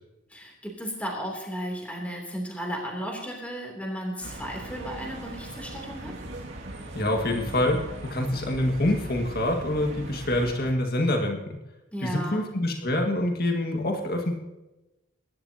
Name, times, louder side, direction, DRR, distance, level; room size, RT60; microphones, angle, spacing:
voice 1, 0.3-6.1 11.9-12.5, equal, 5° left, 0 dB, 3.1 m, -34 dB
sound 1, 4.2-10.7, right 1 dB, 65° right, 2.3 m, -39 dB
voice 2, 7.0-11.4 12.0-14.3, left 1 dB, 50° left, 3 dB, 1.8 m, -26 dB
25.0 x 12.5 x 2.9 m, 0.99 s
head